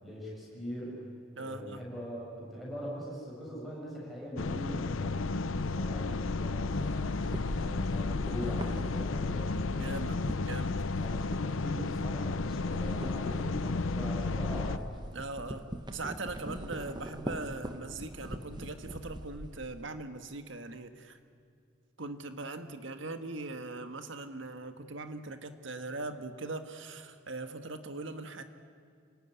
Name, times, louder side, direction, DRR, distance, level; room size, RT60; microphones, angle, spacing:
voice 1, 0.0-7.1 7.5-10.3 11.0-14.9, equal, ahead, -5 dB, 7.4 m, -42 dB
voice 2, 1.4-1.8 9.7-10.7 15.1-15.6 15.9-21.2 22.0-28.4, right 3 dB, 70° right, 8 dB, 1.6 m, -40 dB
sound 1, 4.4-14.8, left 3 dB, 80° left, 0.7 m, -32 dB
sound 2, 6.7-12.1 12.4-19.9, equal, 20° right, 1.2 m, -43 dB
28.5 x 18.5 x 9.8 m, 2.3 s
head